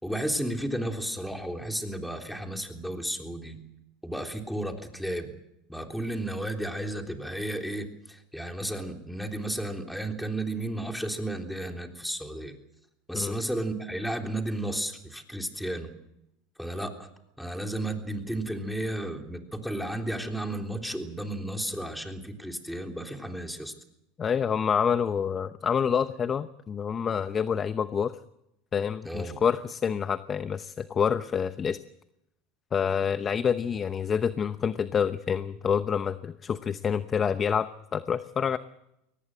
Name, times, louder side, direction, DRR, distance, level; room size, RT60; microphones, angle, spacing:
voice 1, 0.0-3.6 4.0-5.3 5.7-12.6 13.1-15.9 16.6-17.1 17.4-23.7 29.1-29.4, right 1 dB, ahead, 3 dB, 3.5 m, -33 dB
voice 2, 24.2-28.1 28.7-31.8 32.7-38.6, left 7 dB, 30° left, 13 dB, 0.8 m, -27 dB
23.5 x 18.5 x 7.8 m, 0.83 s
supercardioid pair, 105°, 0 cm